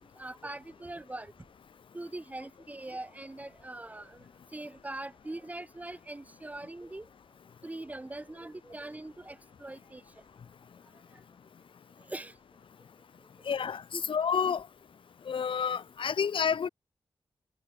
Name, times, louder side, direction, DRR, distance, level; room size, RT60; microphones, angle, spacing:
voice 1, 0.2-1.3 1.9-4.2 4.5-7.1 7.6-10.0 12.1-12.3 13.5-13.6 13.9-14.0, right 2 dB, 15° right, 2.9 m, -42 dB
voice 2, 13.5-13.8 14.1-14.6 15.3-16.7, left 7 dB, 75° left, 1.4 m, -29 dB
wide cardioid pair, 145°, 9 cm